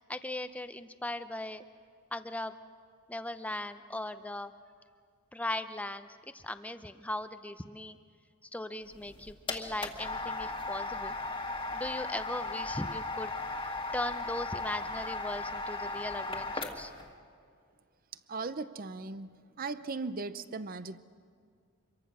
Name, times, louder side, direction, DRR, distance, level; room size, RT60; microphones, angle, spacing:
voice 1, 0.1-1.6 2.1-2.5 3.1-4.5 5.3-6.1 6.3-8.0 8.5-11.1 11.7-13.3 13.9-16.9, left 1 dB, 5° left, 10 dB, 0.6 m, -38 dB
sound 1, 8.9-17.0, left 3 dB, 25° left, 1.6 m, -37 dB
voice 2, 18.3-21.0, right 3 dB, 40° right, 14 dB, 0.6 m, -38 dB
26.0 x 23.0 x 6.2 m, 2.1 s
head